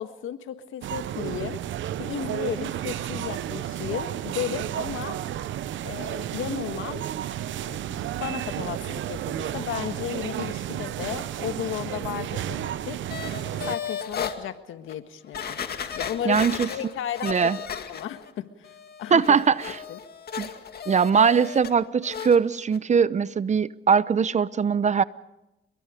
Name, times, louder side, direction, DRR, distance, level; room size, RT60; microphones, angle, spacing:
voice 1, 0.0-1.6 2.0-5.2 5.8-7.0 7.6-13.0 13.7-15.6 15.9-18.7 19.0-19.4 19.9-20.0, left 10 dB, 80° left, 1.6 m, -34 dB
sound 1, 0.8-13.8, right 11 dB, 75° right, 0.9 m, -32 dB
sound 2, 13.1-14.4 14.9-15.0 15.3-18.3 18.6-21.7 22.0-22.4 22.7-22.8, left 7 dB, 50° left, 2.2 m, -35 dB
voice 2, 16.2-16.7 17.2-17.6 19.1-19.8 20.4-20.5 20.9-25.0, right 6 dB, 35° right, 0.8 m, -21 dB
29.5 x 23.0 x 5.2 m
cardioid pair, 90°, 20 cm